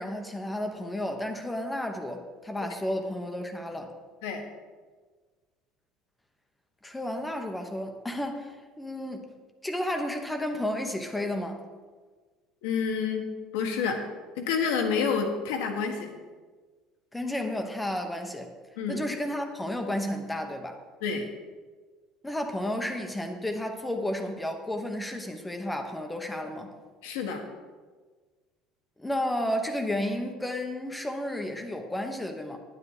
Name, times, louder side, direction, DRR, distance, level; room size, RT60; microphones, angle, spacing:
voice 1, 0.0-3.9 6.8-9.3 9.6-11.6 17.1-18.5 18.9-20.8 22.2-26.7 29.0-32.6, left 1 dB, 10° left, 4 dB, 1.1 m, -32 dB
voice 2, 12.6-13.3 13.5-14.0 14.3-16.2 18.8-19.0 21.0-21.3 27.0-27.4, left 6 dB, 90° left, 3 dB, 1.6 m, -28 dB
9.6 x 9.5 x 5.0 m, 1.4 s
supercardioid pair, 110°, 0 cm